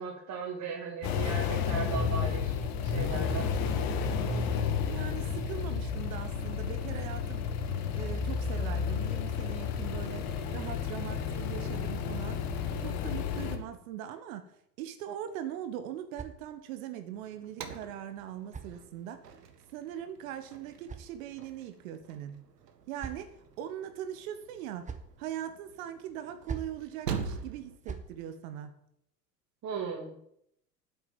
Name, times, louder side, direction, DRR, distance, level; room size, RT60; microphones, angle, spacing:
voice 1, 0.0-2.6 2.8-3.5 29.6-30.1, right 5 dB, 35° right, 0 dB, 2.7 m, -37 dB
sound 1, 1.0-13.6, left 6 dB, 45° left, 1.9 m, -31 dB
voice 2, 4.9-7.5 7.9-12.4 12.8-19.3 19.7-22.4 22.9-24.9 25.2-28.7, right 10 dB, 55° right, 9 dB, 1.4 m, -41 dB
sound 2, 15.3-16.9 17.9-19.3 20.3-21.7 22.5-23.5 24.5-25.2 26.2-26.8 27.6-28.1, right 5 dB, 15° right, 1.4 m, -46 dB
sound 3, 17.1-27.8, right 6 dB, 70° right, 1.7 m, -44 dB
9.3 x 7.9 x 9.2 m, 0.74 s
figure-of-eight pair, 75°, 49 cm